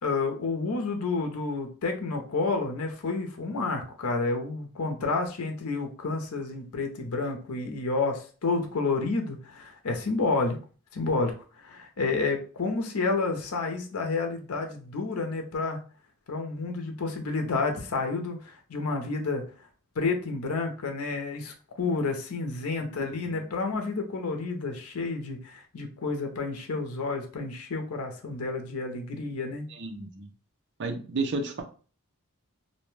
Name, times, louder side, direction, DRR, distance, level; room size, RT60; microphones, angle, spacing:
voice 1, 0.0-10.6 10.9-11.3 11.6-15.8 16.3-19.4 20.0-29.7, left 3 dB, 85° left, 4 dB, 0.6 m, -30 dB
voice 2, 22.9-23.4 29.7-30.3 30.8-31.6, right 3 dB, 55° right, 4 dB, 0.6 m, -33 dB
2.6 x 2.1 x 3.1 m, 0.38 s
head